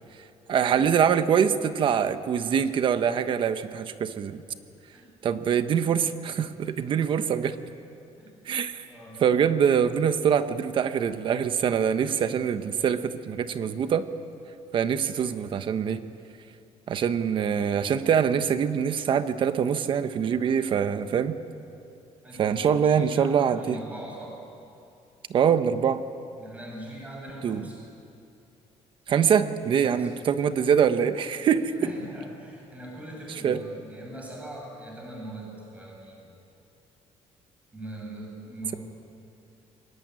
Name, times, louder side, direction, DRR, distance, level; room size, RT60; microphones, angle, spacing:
voice 1, 0.5-4.4 5.2-7.5 8.5-8.8 9.2-14.1 14.7-16.0 16.9-21.4 22.4-23.8 25.3-26.0 27.4-27.7 29.1-31.7 33.3-33.6, right 7 dB, 45° right, 10 dB, 1.1 m, -24 dB
voice 2, 8.8-9.2 22.2-24.4 26.4-27.8 29.8-30.1 31.8-36.3 37.7-38.8, right 1 dB, 10° right, -2 dB, 7.6 m, -41 dB
24.0 x 21.0 x 9.6 m, 2.6 s
cardioid pair, 165°, 12 cm